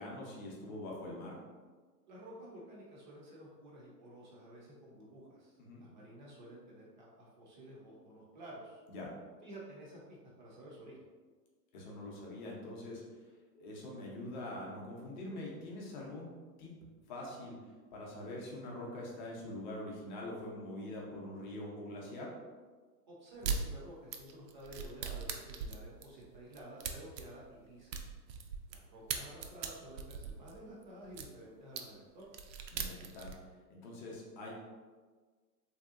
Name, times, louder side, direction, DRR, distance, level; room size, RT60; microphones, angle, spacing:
voice 1, 0.0-1.4 5.6-5.8 8.9-9.1 11.7-13.0 13.5-16.3 16.6-16.7 17.1-17.6 17.9-22.3 32.7-33.3 33.7-34.5, left 1 dB, 30° left, -3 dB, 0.5 m, -44 dB
voice 2, 2.1-8.8 9.4-11.1 23.1-28.0 28.7-32.2, right 1 dB, 30° right, -4 dB, 0.4 m, -52 dB
sound 1, 23.4-23.6 24.1-28.8 29.1-31.3 31.8-31.9 32.2-33.4, right 6 dB, 90° right, 0.6 m, -39 dB
3.1 x 2.7 x 2.4 m, 1.4 s
hypercardioid pair, 145°, 50 cm